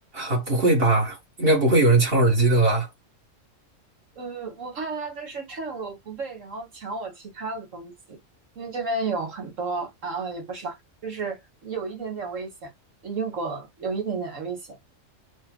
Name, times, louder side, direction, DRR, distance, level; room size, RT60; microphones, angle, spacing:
voice 1, 0.1-2.9, right 2 dB, 50° right, 1.8 m, -20 dB
voice 2, 4.2-8.2 8.6-10.8 11.0-12.7 13.0-14.8, right 4 dB, 80° right, 1.9 m, -32 dB
6.2 x 2.2 x 3.8 m
omnidirectional pair, 1.3 m